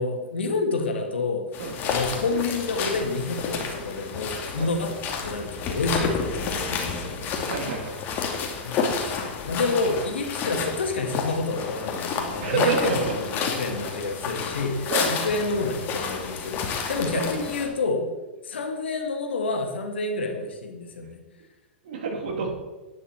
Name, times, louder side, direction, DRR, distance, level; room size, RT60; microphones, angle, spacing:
voice 1, 0.0-1.5 1.9-5.0 5.2-7.3 8.6-8.9 9.4-18.1 18.4-21.2, left 3 dB, 80° left, 4 dB, 2.1 m, -28 dB
sound 1, 1.5-17.7, left 5 dB, 35° left, 2.4 m, -30 dB
voice 2, 7.4-8.1 12.4-13.1 14.9-15.1 17.0-17.3 21.8-22.5, right 4 dB, 65° right, 1 dB, 3.3 m, -28 dB
11.0 x 10.0 x 4.6 m, 1.1 s
hypercardioid pair, 110°, 6 cm